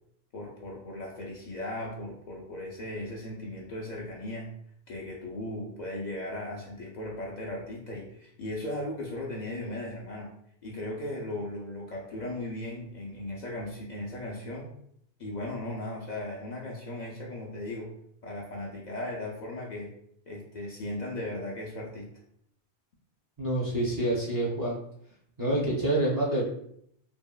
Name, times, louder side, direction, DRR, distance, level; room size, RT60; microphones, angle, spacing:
voice 1, 0.3-4.5 4.9-10.3 10.6-14.7 15.2-17.9 18.2-19.9 20.3-22.1, left 1 dB, 55° left, -3 dB, 0.5 m, -37 dB
voice 2, 23.4-24.7 25.4-26.4, right 1 dB, 30° right, -5 dB, 0.4 m, -27 dB
2.9 x 2.6 x 2.2 m, 0.69 s
omnidirectional pair, 1.1 m